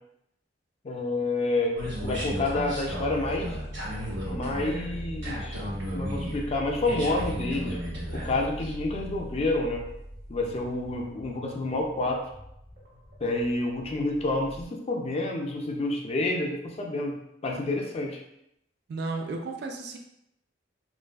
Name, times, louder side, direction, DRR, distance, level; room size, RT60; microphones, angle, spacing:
voice 1, 0.8-3.6 4.3-5.6 5.9-7.8 8.1-9.8 10.3-12.2 13.2-18.2, left 2 dB, 35° left, 1 dB, 0.3 m, -29 dB
sound 1, 1.8-14.6, equal, 75° right, 1.4 m, -35 dB
voice 2, 18.9-20.0, right 3 dB, 55° right, 3 dB, 0.3 m, -33 dB
2.5 x 2.3 x 2.3 m, 0.79 s
head